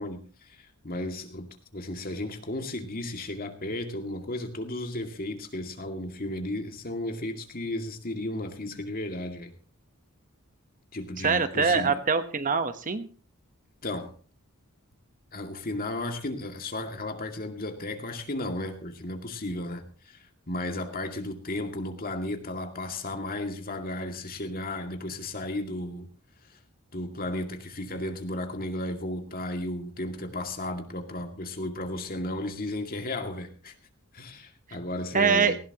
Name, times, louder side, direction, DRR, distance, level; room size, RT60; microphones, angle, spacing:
voice 1, 0.0-1.5 1.7-9.5 10.9-12.0 13.8-14.1 15.3-26.1 26.5-26.6 26.9-33.7 34.1-35.6, left 1 dB, 40° left, 4 dB, 2.3 m, -34 dB
voice 2, 11.2-13.1 35.1-35.5, right 5 dB, 35° right, 10 dB, 1.0 m, -24 dB
18.5 x 16.5 x 3.0 m, 0.37 s
head